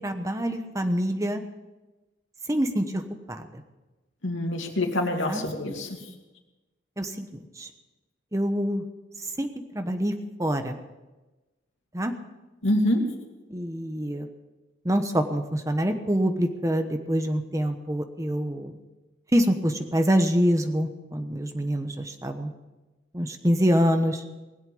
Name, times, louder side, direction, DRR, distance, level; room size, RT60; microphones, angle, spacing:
voice 1, 0.0-1.4 2.5-3.0 3.3-3.5 5.2-5.4 7.0-7.7 8.3-8.8 9.4-9.5 9.7-10.1 10.4-10.7 11.9-12.1 13.5-14.3 14.8-18.7 19.3-22.5 23.1-24.2, equal, 15° right, 6 dB, 1.1 m, -25 dB
voice 2, 4.2-5.9 12.6-13.0, left 1 dB, 80° left, 2 dB, 2.6 m, -25 dB
20.5 x 8.1 x 7.8 m, 1.1 s
head